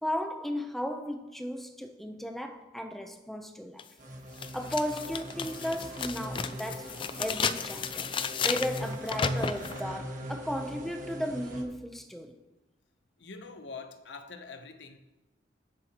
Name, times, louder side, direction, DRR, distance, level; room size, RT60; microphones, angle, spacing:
voice 1, 0.0-3.9 4.5-6.9 7.2-8.1 8.4-12.3, equal, ahead, 0.7 m, -35 dB
sound 1, 3.8-3.9 4.4-9.8, left 6 dB, 30° left, 0.4 m, -33 dB
sound 2, 4.0-11.6, equal, 45° right, 1.4 m, -40 dB
voice 2, 13.2-15.0, left 4 dB, 70° left, 0.8 m, -44 dB
19.5 x 7.5 x 3.0 m
head